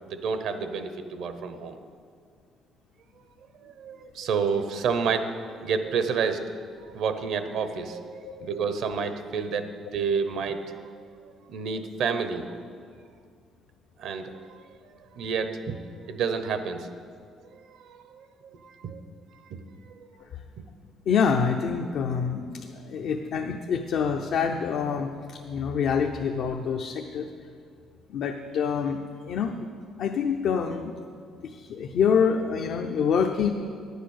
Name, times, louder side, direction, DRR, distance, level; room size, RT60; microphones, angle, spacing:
voice 1, 0.1-1.8 3.6-5.3 5.6-6.4 6.9-11.0 11.5-12.5 14.0-14.6 15.1-15.8 16.1-16.9 17.5-19.0 19.5-19.6, right 5 dB, 75° right, 9 dB, 0.8 m, -30 dB
voice 2, 21.1-27.3 28.1-29.7 30.0-30.9 31.4-33.5, left 6 dB, 70° left, 3 dB, 0.6 m, -26 dB
10.0 x 8.2 x 6.5 m, 2.2 s
cardioid pair, 95°, 0 cm